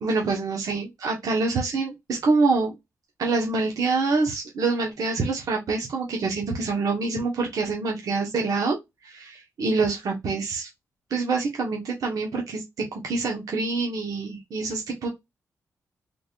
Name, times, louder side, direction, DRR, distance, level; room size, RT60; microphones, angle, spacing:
voice 1, 0.0-2.7 3.2-8.8 9.0-10.7 11.1-12.6 12.9-15.1, right 3 dB, 75° right, 0 dB, 1.1 m, -26 dB
3.8 x 3.5 x 2.5 m, 0.19 s
cardioid pair, 80°, 6 cm